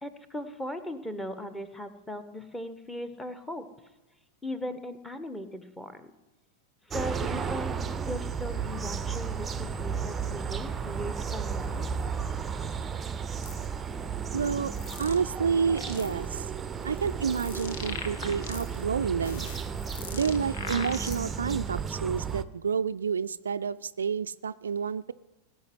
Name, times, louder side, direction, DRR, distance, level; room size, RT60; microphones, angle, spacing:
voice 1, 0.0-3.6 4.4-6.1 6.9-7.7 8.1-11.9, equal, 5° left, 10 dB, 1.3 m, -38 dB
sound 1, 6.9-22.4, right 6 dB, 15° right, 0.7 m, -33 dB
sound 2, 13.4-13.6 14.3-15.2 15.6-16.3 16.8-18.9 19.2-21.5, left 5 dB, 55° left, 1.6 m, -41 dB
voice 2, 14.3-14.7 15.0-16.5 16.8-19.5 20.1-25.1, right 6 dB, 70° right, 13 dB, 0.4 m, -29 dB
18.5 x 6.3 x 9.4 m, 1.0 s
figure-of-eight pair, 90°, 0 cm